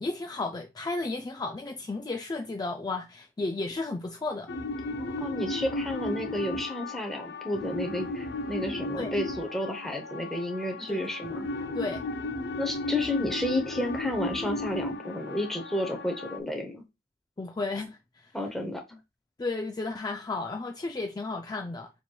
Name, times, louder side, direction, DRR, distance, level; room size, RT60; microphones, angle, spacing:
voice 1, 0.0-4.5 9.0-9.1 10.9-11.0 11.7-12.0 17.4-18.3 19.4-21.9, left 3 dB, 20° left, 0.4 m, -33 dB
sound 1, 4.5-16.4, left 2 dB, 60° left, 0.6 m, -35 dB
voice 2, 5.2-11.5 12.6-16.8 18.3-18.8, left 1 dB, ahead, 0.8 m, -31 dB
6.9 x 3.0 x 2.3 m
head